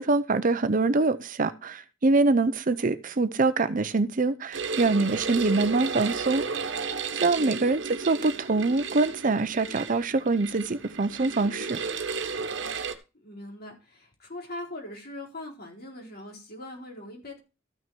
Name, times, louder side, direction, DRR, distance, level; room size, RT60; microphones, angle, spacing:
voice 1, 0.0-6.4 7.2-11.8, right 3 dB, 40° right, 0.7 m, -24 dB
sound 1, 4.5-12.9, right 5 dB, 65° right, 1.3 m, -33 dB
voice 2, 7.1-7.8 13.1-17.4, left 1 dB, 50° left, 4.3 m, -41 dB
14.0 x 6.2 x 4.6 m
head